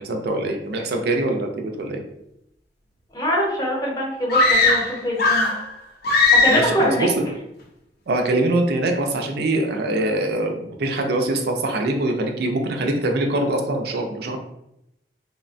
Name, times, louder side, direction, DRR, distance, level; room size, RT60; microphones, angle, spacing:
voice 1, 0.0-2.0 6.5-7.3 8.1-14.4, right 2 dB, 65° right, 3 dB, 0.4 m, -23 dB
voice 2, 3.1-5.5 6.3-7.1, equal, 20° left, -4 dB, 0.8 m, -23 dB
sound 1, 4.3-5.7 6.0-6.8, left 3 dB, 60° left, 0.5 m, -18 dB
3.1 x 2.1 x 2.5 m, 0.81 s
head